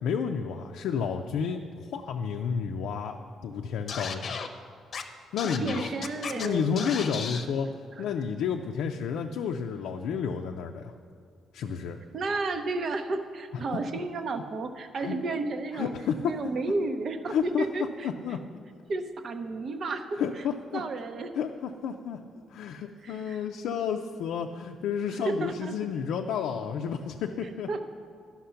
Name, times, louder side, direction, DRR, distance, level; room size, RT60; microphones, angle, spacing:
voice 1, 0.0-4.4 5.3-5.9 6.3-10.9 11.5-12.0 13.5-13.6 15.0-15.2 15.8-16.3 17.3-17.7 18.0-18.4 20.2-20.8 21.3-22.2 22.5-27.8, left 7 dB, 85° left, 3 dB, 0.4 m, -31 dB
Scratching (performance technique), 3.9-4.5 4.9-5.0 5.4-6.5 6.8-7.4, left 6 dB, 55° left, 0.7 m, -34 dB
voice 2, 5.4-6.9 8.0-8.1 12.1-15.9 16.2-18.1 18.9-20.4 20.7-21.3 23.0-23.5 25.3-25.7 27.7-27.8, right 3 dB, 55° right, 8 dB, 0.7 m, -32 dB
11.5 x 5.8 x 5.7 m, 2.3 s
cardioid pair, 90°, 0 cm